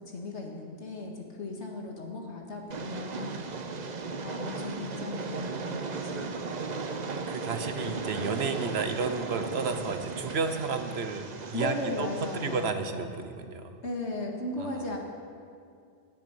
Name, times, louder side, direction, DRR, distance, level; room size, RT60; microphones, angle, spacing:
voice 1, 0.1-3.4 4.2-6.4 7.8-8.0 11.5-12.7 13.8-15.0, left 2 dB, 80° left, 0 dB, 2.1 m, -36 dB
Train, 2.7-12.7, right 4 dB, 45° right, 0.8 m, -36 dB
voice 2, 7.3-13.8 14.6-14.9, right 5 dB, 65° right, 8 dB, 1.2 m, -32 dB
9.9 x 9.6 x 9.4 m, 2.4 s
omnidirectional pair, 1.2 m